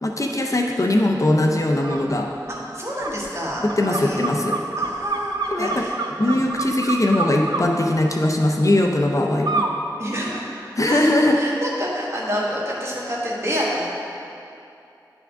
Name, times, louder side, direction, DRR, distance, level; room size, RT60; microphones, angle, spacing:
voice 1, 0.0-2.3 3.8-4.6 5.5-5.8 6.2-9.7 10.8-11.4, left 1 dB, 45° left, 1 dB, 0.5 m, -20 dB
sound 1, 1.8-2.0 2.5-7.6 9.4-9.8 10.2-11.0, right 3 dB, 70° right, 0.5 m, -28 dB
voice 2, 2.6-3.6 3.9-4.3 4.8-6.0 6.2-6.4 10.0-10.4 10.8-13.8, equal, 35° right, -5 dB, 1.4 m, -28 dB
10.0 x 3.6 x 3.4 m, 2.7 s
wide cardioid pair, 40°, 8 cm